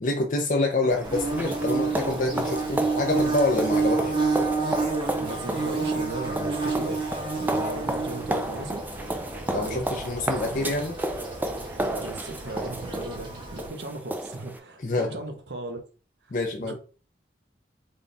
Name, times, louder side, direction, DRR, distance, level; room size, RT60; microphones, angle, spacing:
voice 1, 0.0-4.1 9.5-10.9 14.8-15.2 16.3-16.7, left 2 dB, 45° left, 0.5 m, -27 dB
sound 1, 0.9-14.6, right 1 dB, 10° right, 0.3 m, -33 dB
Bird / Buzz, 1.0-13.7, right 4 dB, 30° right, 0.7 m, -29 dB
voice 2, 5.2-8.8 9.5-9.9 10.4-10.7 11.8-15.8 16.6-16.7, right 2 dB, 70° right, 0.7 m, -36 dB
3.5 x 2.3 x 3.8 m
head